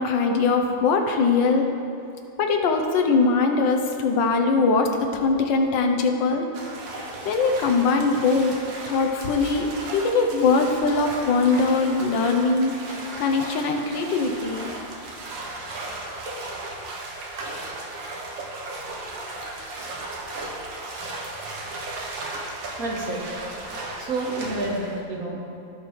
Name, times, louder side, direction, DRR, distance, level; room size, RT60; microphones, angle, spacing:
voice 1, 0.0-1.7 2.4-6.5 7.2-8.6 8.9-9.7 9.9-14.7, left 4 dB, 75° left, 3 dB, 1.5 m, -21 dB
sound 1, 6.5-25.0, right 2 dB, 75° right, 1.8 m, -36 dB
voice 2, 22.8-23.2 24.0-25.5, right 2 dB, 50° right, -2 dB, 1.5 m, -29 dB
16.0 x 5.9 x 3.2 m, 2.6 s
omnidirectional pair, 2.0 m